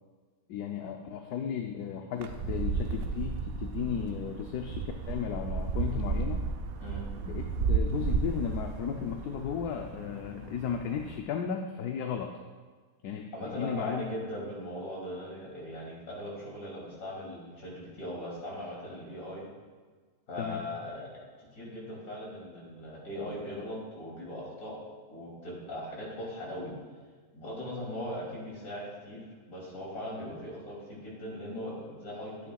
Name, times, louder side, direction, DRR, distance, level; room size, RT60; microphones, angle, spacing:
voice 1, 0.5-6.4 7.3-7.4 7.7-12.3 13.0-14.0 20.4-20.6, left 7 dB, 75° left, 4 dB, 1.1 m, -35 dB
sound 1, 2.2-11.2, right 5 dB, 70° right, 1.0 m, -33 dB
voice 2, 13.3-19.5 20.3-21.1 21.4-24.8 25.1-26.7 27.3-32.5, left 1 dB, 55° left, -5 dB, 3.2 m, -39 dB
12.0 x 9.3 x 2.3 m, 1.5 s
omnidirectional pair, 1.7 m